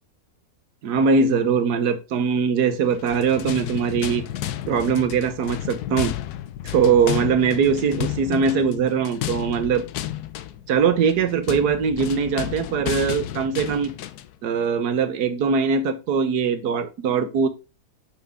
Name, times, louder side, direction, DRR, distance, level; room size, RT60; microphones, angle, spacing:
voice 1, 0.8-4.2 4.7-6.1 6.6-9.9 10.7-13.9 14.4-17.5, right 6 dB, 90° right, 10 dB, 1.5 m, -21 dB
sound 1, 2.9-14.4, left 12 dB, 80° left, 1.1 m, -32 dB
6.8 x 5.8 x 3.6 m, 0.29 s
omnidirectional pair, 1.6 m